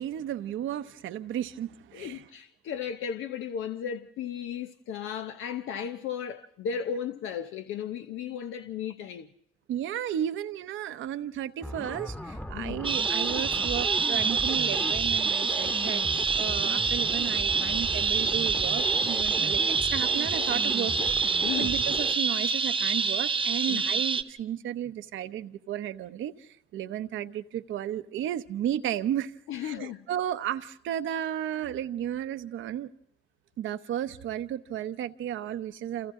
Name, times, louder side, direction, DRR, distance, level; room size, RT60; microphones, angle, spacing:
voice 1, 0.0-2.3 9.7-16.0 16.4-29.3 29.6-32.9 33.6-36.1, right 10 dB, 80° right, 0.9 m, -34 dB
voice 2, 1.9-9.3 12.5-12.8 21.4-21.7 23.7-23.8 29.5-30.0, left 8 dB, 85° left, 0.8 m, -35 dB
sound 1, 11.6-22.1, left 1 dB, 10° left, 1.2 m, -37 dB
sound 2, 12.8-24.2, right 5 dB, 25° right, 1.1 m, -26 dB
28.0 x 28.0 x 3.8 m
cardioid pair, 90°, 20 cm